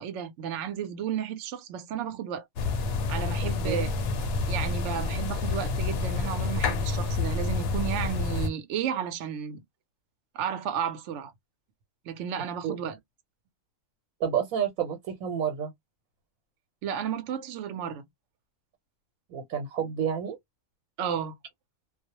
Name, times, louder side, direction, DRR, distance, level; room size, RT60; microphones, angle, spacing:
voice 1, 0.0-2.5 3.1-3.9 4.5-9.6 10.3-11.3 12.1-13.0 16.8-18.0 21.0-21.4, right 8 dB, 70° right, 0.8 m, -33 dB
sound 1, 2.6-8.5, left 4 dB, 65° left, 0.6 m, -28 dB
voice 2, 14.2-15.7 19.3-20.4, right 8 dB, 90° right, 1.1 m, -29 dB
2.3 x 2.0 x 2.7 m
omnidirectional pair, 1.4 m